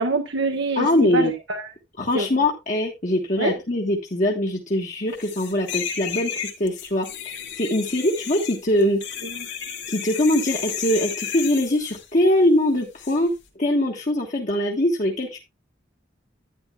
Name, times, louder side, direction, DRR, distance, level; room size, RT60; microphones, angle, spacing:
voice 1, 0.0-1.6 2.1-2.3 3.4-3.5 9.3-9.5, right 3 dB, 70° right, 5 dB, 1.2 m, -25 dB
voice 2, 0.8-1.3 2.0-9.0 9.9-13.3 13.6-15.4, left 1 dB, 40° left, 0 dB, 1.4 m, -22 dB
sound 1, 5.2-12.1 13.0-13.2, left 9 dB, 75° left, 2.5 m, -33 dB
11.5 x 9.9 x 2.4 m, 0.24 s
head